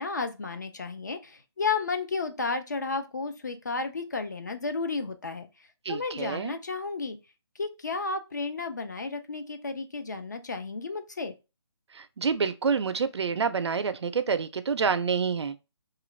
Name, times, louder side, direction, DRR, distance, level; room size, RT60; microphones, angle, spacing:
voice 1, 0.0-5.5 5.9-7.2 7.6-11.3, left 4 dB, 40° left, 0.4 m, -32 dB
voice 2, 5.9-6.5 11.9-15.6, right 5 dB, 75° right, 0.4 m, -28 dB
2.8 x 2.4 x 3.0 m
hypercardioid pair, 175°, 15 cm